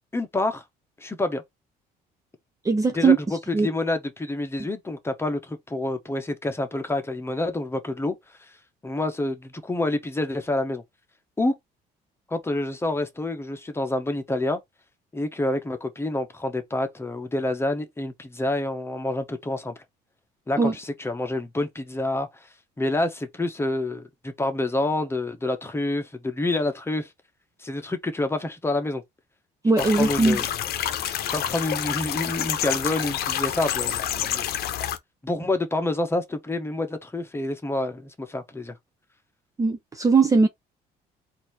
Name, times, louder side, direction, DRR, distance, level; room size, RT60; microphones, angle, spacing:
voice 1, 0.1-0.6 1.0-1.4 2.9-3.1 3.6-8.1 8.8-10.8 11.4-11.5 12.3-14.6 15.1-19.7 20.5-22.3 22.8-27.1 27.6-29.0 30.0-30.4 31.3-34.5 35.2-38.8, left 2 dB, 15° left, 1.1 m, -27 dB
voice 2, 2.6-3.2 3.5-3.7 20.6-20.7 29.6-30.4 39.6-40.5, right 4 dB, 20° right, 0.6 m, -19 dB
sound 1, 29.8-35.0, left 10 dB, 65° left, 0.8 m, -28 dB
4.1 x 2.8 x 4.6 m
cardioid pair, 110°, 17 cm